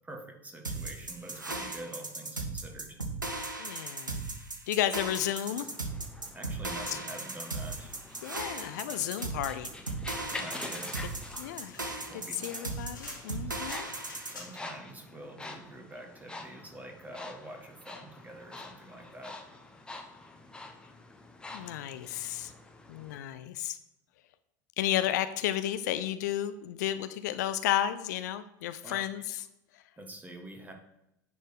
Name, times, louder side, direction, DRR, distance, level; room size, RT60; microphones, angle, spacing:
voice 1, 0.0-3.0 6.3-8.0 10.2-11.0 12.1-12.5 14.3-19.4 28.8-29.0 30.0-30.7, right 1 dB, 15° right, 3 dB, 1.8 m, -46 dB
sound 1, 0.6-14.4, right 3 dB, 90° right, 0.9 m, -37 dB
voice 2, 3.6-4.2 4.7-5.7 6.9-7.0 8.2-9.7 11.4-11.8 12.4-13.9 21.5-22.5 22.9-23.8 24.8-29.4, left 12 dB, 65° left, 11 dB, 0.5 m, -32 dB
sound 2, 5.5-23.2, left 2 dB, 10° left, 1.1 m, -47 dB
sound 3, 11.7-14.8, left 3 dB, 85° left, 2.1 m, -49 dB
10.0 x 4.3 x 4.9 m, 0.85 s
figure-of-eight pair, 75°, 10 cm